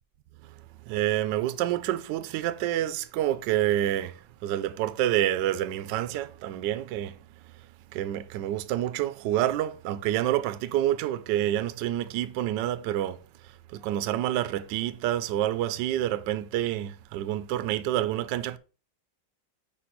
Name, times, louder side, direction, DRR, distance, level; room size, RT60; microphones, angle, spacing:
voice 1, 0.9-7.2 7.9-13.2 13.4-18.6, right 12 dB, 75° right, 1.1 m, -28 dB
5.2 x 4.4 x 5.8 m
omnidirectional pair, 2.2 m